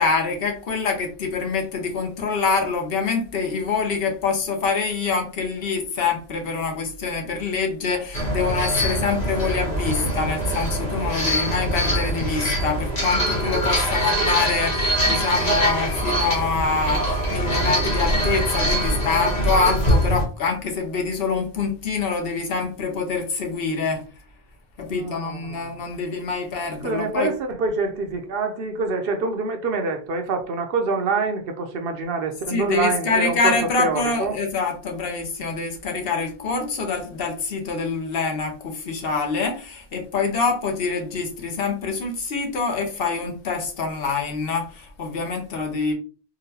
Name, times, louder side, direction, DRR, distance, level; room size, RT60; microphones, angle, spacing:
voice 1, 0.0-24.0 24.8-27.3 32.5-45.9, left 4 dB, 65° left, 0.9 m, -25 dB
sound 1, 8.1-20.2, equal, 40° left, 1.3 m, -23 dB
voice 2, 24.9-25.7 26.8-34.4, right 4 dB, 70° right, 0.8 m, -26 dB
3.9 x 2.2 x 2.7 m
omnidirectional pair, 1.0 m